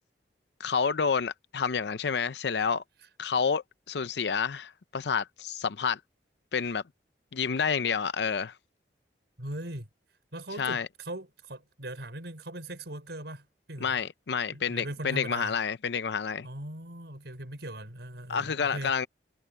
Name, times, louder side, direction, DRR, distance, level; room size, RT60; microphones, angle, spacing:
voice 1, 0.6-2.8 3.2-6.0 6.5-6.8 7.3-8.5 10.6-10.9 13.8-16.5 18.3-19.1, left 6 dB, 75° left, 0.6 m, -29 dB
voice 2, 9.4-9.9 10.3-14.0 14.5-15.5 16.4-18.9, right 1 dB, 75° right, 4.5 m, -39 dB
head